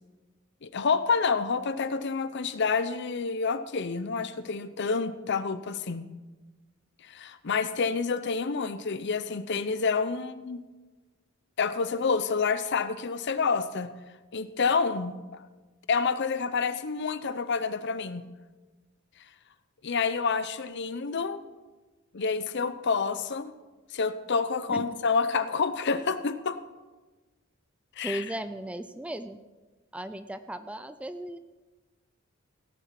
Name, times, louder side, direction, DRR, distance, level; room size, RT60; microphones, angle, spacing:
voice 1, 0.6-6.1 7.0-10.6 11.6-13.9 14.3-15.4 15.9-18.2 19.8-21.4 22.1-23.5 23.9-26.6 28.0-28.2, left 5 dB, 55° left, 13 dB, 0.7 m, -28 dB
voice 2, 28.0-29.4 29.9-31.4, right 1 dB, 5° right, 11 dB, 0.4 m, -36 dB
17.0 x 7.0 x 5.9 m, 1.2 s
head